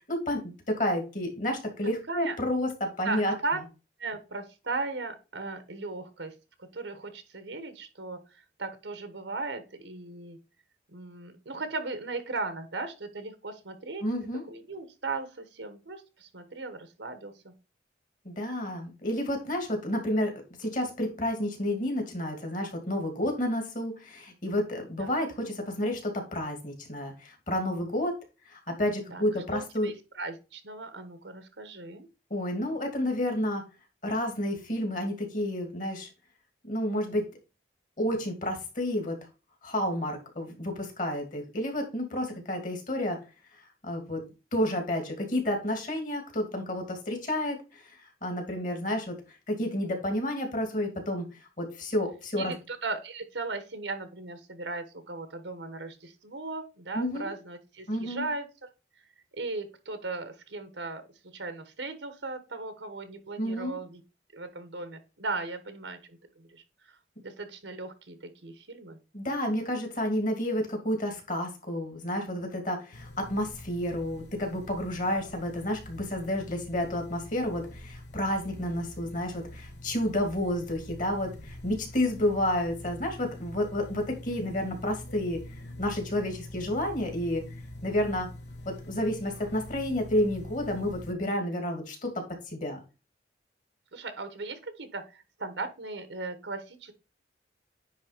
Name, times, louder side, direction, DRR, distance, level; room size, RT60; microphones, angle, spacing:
voice 1, 0.1-3.3 14.0-14.4 18.2-20.3 20.6-28.1 28.5-29.9 32.3-33.6 34.0-36.1 36.6-37.2 38.0-39.2 39.6-43.2 43.8-44.2 44.5-49.2 49.5-52.5 56.9-57.3 57.9-58.2 63.4-63.8 69.1-85.4 85.8-87.4 87.8-88.3 88.7-92.8, left 1 dB, 45° left, 3 dB, 2.6 m, -30 dB
voice 2, 3.0-3.6 4.0-6.3 6.6-10.4 10.9-14.0 14.5-17.5 25.0-25.1 29.1-32.1 52.3-58.4 59.3-61.0 61.3-64.0 64.3-69.0 93.9-96.9, right 3 dB, 80° right, 9 dB, 1.3 m, -37 dB
sound 1, 72.9-91.1, left 1 dB, 65° left, 1.2 m, -45 dB
9.7 x 3.5 x 5.1 m, 0.30 s
head